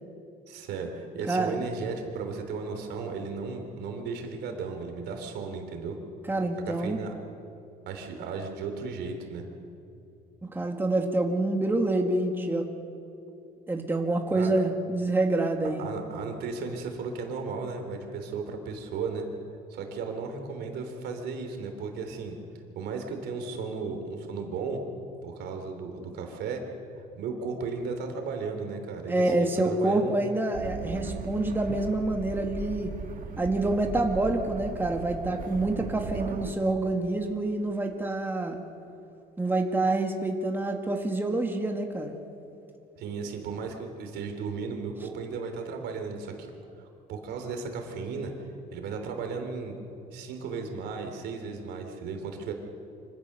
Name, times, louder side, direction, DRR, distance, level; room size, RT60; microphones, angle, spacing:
voice 1, 0.5-6.0 6.7-7.1 7.9-9.4 14.3-14.5 15.6-19.2 19.7-22.4 22.8-24.8 25.2-26.6 27.2-30.1 35.9-36.2 43.0-46.3 46.8-48.3 48.7-49.7 50.1-52.5, right 5 dB, 80° right, 4 dB, 3.4 m, -35 dB
voice 2, 6.3-7.0 10.4-12.7 13.7-15.9 29.1-32.9 33.4-38.6 39.4-42.2, right 2 dB, 10° right, 2 dB, 1.9 m, -27 dB
sound 1, 30.5-36.5, right 5 dB, 50° right, 1.7 m, -38 dB
25.5 x 16.5 x 6.8 m, 2.7 s
cardioid pair, 110°, 17 cm